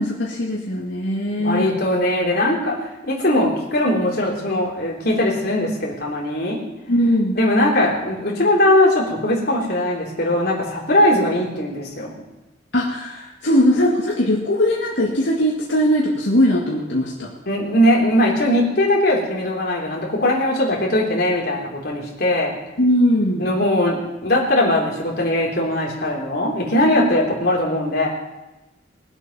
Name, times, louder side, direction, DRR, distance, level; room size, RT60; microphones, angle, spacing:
voice 1, 0.0-1.7 6.9-7.4 12.7-17.3 22.8-23.5 27.0-27.1, equal, 80° left, -4 dB, 2.1 m, -20 dB
voice 2, 1.4-6.6 7.3-12.2 17.5-22.5 23.4-28.1, left 1 dB, 55° left, -3 dB, 3.6 m, -20 dB
21.0 x 8.1 x 5.7 m, 1.0 s
head